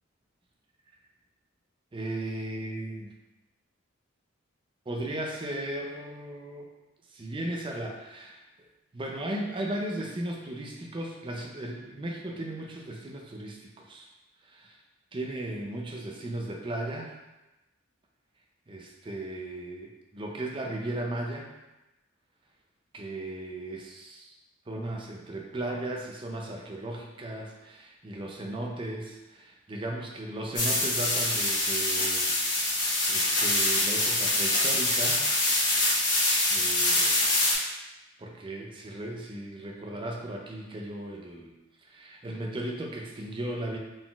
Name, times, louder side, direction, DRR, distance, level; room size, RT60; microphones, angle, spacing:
voice 1, 1.9-3.1 4.9-6.7 7.1-8.4 8.9-14.1 14.5-14.8 15.1-17.1 18.7-21.5 22.9-24.3 24.7-32.3 32.8-35.3 36.1-37.2 38.2-41.5 41.8-43.8, right 1 dB, 25° right, 0 dB, 0.4 m, -36 dB
sound 1, 30.6-37.5, left 1 dB, 55° left, 1.3 m, -25 dB
3.9 x 3.8 x 2.3 m, 1.0 s
head